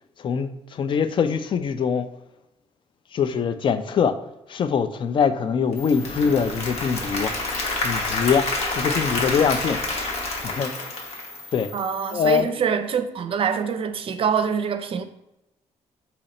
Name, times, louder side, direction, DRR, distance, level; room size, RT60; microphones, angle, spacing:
voice 1, 0.2-2.1 3.1-4.2 4.5-7.3 7.8-9.8 10.4-10.7 11.5-11.7 12.1-12.5, left 6 dB, 45° left, 0.4 m, -23 dB
Applause / Crowd, 5.7-11.8, left 2 dB, 60° left, 1.0 m, -28 dB
sound 1, 5.8-12.4, left 2 dB, 5° left, 0.8 m, -41 dB
voice 2, 11.7-15.0, right 7 dB, 50° right, 0.5 m, -25 dB
4.2 x 2.8 x 4.1 m
cardioid pair, 110°, 12 cm